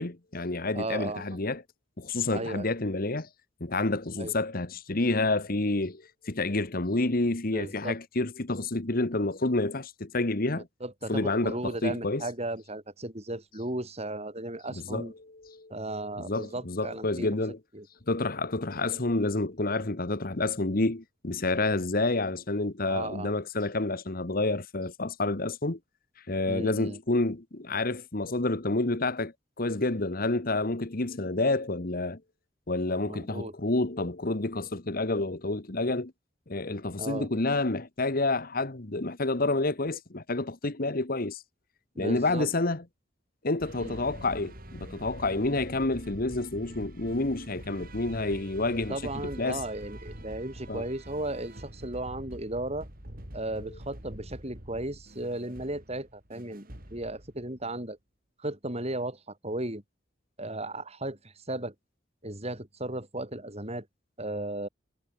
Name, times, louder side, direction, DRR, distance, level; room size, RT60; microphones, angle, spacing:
voice 1, 0.0-1.6 2.0-3.3 3.6-10.7 11.1-12.2 14.7-15.8 16.2-17.6 18.1-25.8 26.3-32.2 32.7-36.1 36.5-41.4 42.0-42.8 43.4-49.0 49.4-49.6 50.7-50.8 53.6-53.7, left 2 dB, 50° left, 1.5 m, -29 dB
voice 2, 0.7-1.2 2.3-2.7 4.2-4.3 7.5-8.0 10.6-15.1 15.7-17.3 17.7-17.9 22.9-23.3 26.5-27.0 33.1-33.5 37.0-37.3 42.0-42.5 43.8-44.0 48.9-52.9 53.3-56.6 56.9-58.0 58.4-59.8 60.4-61.7 62.2-63.9 64.2-64.7, right 1 dB, 35° right, 6.8 m, -35 dB
sound 1, 43.6-57.6, right 1 dB, 50° right, 4.4 m, -45 dB
head